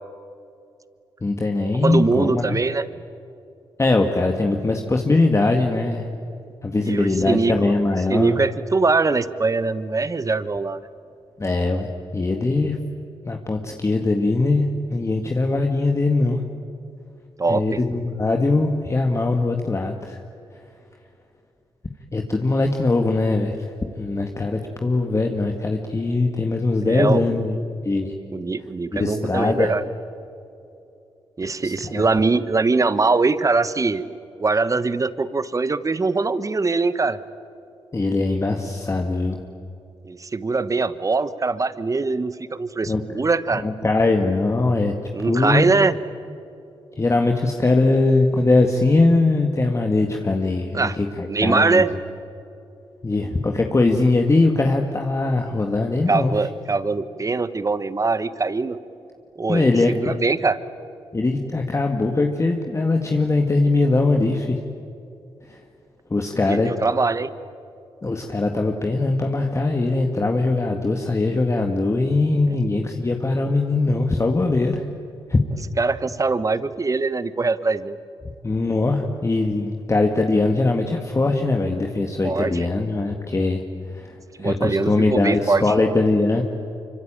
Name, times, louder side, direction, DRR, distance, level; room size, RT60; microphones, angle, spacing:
voice 1, 1.2-2.6 3.8-6.1 6.6-8.4 11.4-12.8 13.3-16.4 17.5-20.2 22.1-23.6 24.0-27.6 27.8-28.1 28.9-29.7 31.6-32.0 37.9-39.4 42.9-43.0 43.6-44.9 45.3-45.7 47.0-51.8 53.0-56.3 59.5-60.2 61.1-64.6 66.1-66.7 68.0-74.8 75.3-75.4 78.4-83.6 83.9-84.1 84.4-86.4, left 2 dB, 30° left, 3 dB, 2.0 m, -21 dB
voice 2, 1.8-2.9 6.8-7.7 8.1-10.8 17.4-17.8 26.9-27.2 28.3-29.9 31.4-34.0 34.4-37.2 40.0-43.6 45.1-46.0 50.7-51.0 51.3-51.9 56.1-58.8 59.4-60.6 66.5-67.3 72.5-72.6 75.8-78.0 82.2-82.7 84.4-85.7, right 3 dB, 35° right, 14 dB, 1.3 m, -22 dB
25.5 x 24.5 x 9.0 m, 2.7 s
cardioid pair, 60°, 10 cm